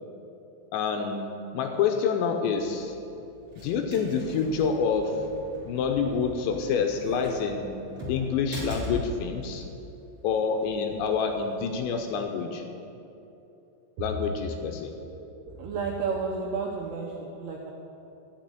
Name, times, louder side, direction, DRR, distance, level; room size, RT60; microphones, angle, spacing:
voice 1, 0.7-3.0 3.6-5.2 5.7-7.7 8.1-9.6 10.2-12.6 14.0-14.9, left 6 dB, 80° left, 4 dB, 2.8 m, -27 dB
sound 1, 2.6-12.2, left 1 dB, 25° right, 3.5 m, -42 dB
voice 2, 15.0-17.7, right 5 dB, 80° right, 0 dB, 2.4 m, -32 dB
13.5 x 6.2 x 9.3 m, 2.9 s
omnidirectional pair, 5.5 m